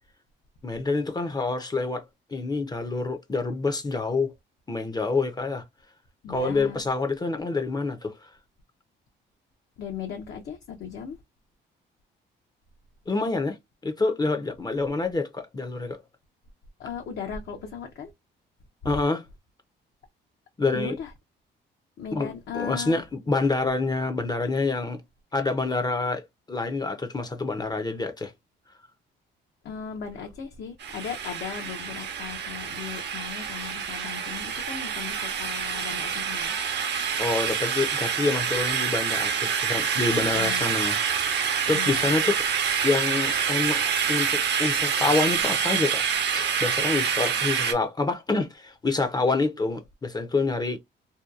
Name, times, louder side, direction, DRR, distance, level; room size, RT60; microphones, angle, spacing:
voice 1, 0.6-2.0 2.3-4.3 4.7-5.6 6.3-8.3 13.1-13.6 13.8-16.0 18.8-19.2 20.6-21.0 22.1-25.0 25.3-28.3 37.2-41.0 41.7-42.4 42.8-43.8 44.1-46.0 46.3-50.8, left 3 dB, 20° left, 0.5 m, -27 dB
voice 2, 6.2-6.8 9.8-11.2 16.8-18.1 18.8-18.9 20.7-21.1 22.0-23.0 29.6-36.6 40.2-40.8 41.7-42.2, left 6 dB, 60° left, 0.6 m, -37 dB
sound 1, 30.8-47.7, right 7 dB, 60° right, 0.7 m, -27 dB
2.7 x 2.2 x 2.3 m
cardioid pair, 90°, 20 cm